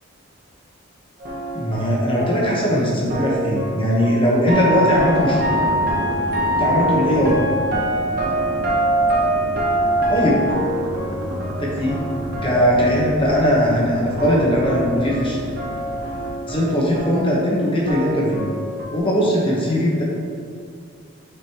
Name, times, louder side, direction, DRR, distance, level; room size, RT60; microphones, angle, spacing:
sound 1, 1.2-13.9 14.2-19.0, right 1 dB, 40° right, 1.0 m, -25 dB
voice 1, 1.5-5.4 6.5-7.4 10.1-10.4 11.6-12.0 12.4-15.4 16.5-18.5 18.9-20.0, equal, 25° left, -4 dB, 1.1 m, -19 dB
sound 2, 5.1-16.3, equal, 70° right, 1.1 m, -32 dB
6.6 x 5.1 x 3.0 m, 2.1 s
head